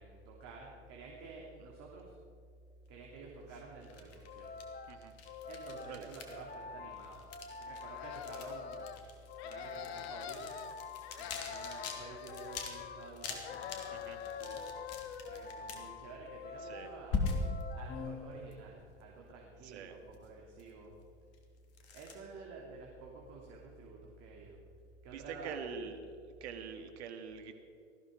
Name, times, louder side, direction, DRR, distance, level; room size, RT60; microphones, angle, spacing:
voice 1, 0.0-2.2 2.9-4.6 5.4-7.3 7.6-8.9 9.4-10.8 11.2-14.7 15.2-17.3 17.7-21.0 21.9-24.7 25.0-25.6, right 4 dB, 45° right, -1 dB, 3.0 m, -50 dB
sound 1, 3.4-6.5 6.9-12.0 12.2-12.7 13.0-15.9 17.1-17.6 18.5-18.6 20.1-20.3 20.6-20.7 21.3-21.4 21.7-22.2, left 4 dB, 45° left, 2.9 m, -42 dB
sound 2, 4.2-18.8, left 4 dB, 25° left, 1.6 m, -48 dB
sound 3, 7.8-9.0 9.4-10.7 11.0-13.2 13.4-15.4, left 10 dB, 60° left, 1.2 m, -45 dB
voice 2, 19.6-20.0 25.1-26.0 26.4-27.5, right 6 dB, 65° right, 7 dB, 2.1 m, -44 dB
19.0 x 14.5 x 5.0 m, 2.4 s
hypercardioid pair, 90°, 35 cm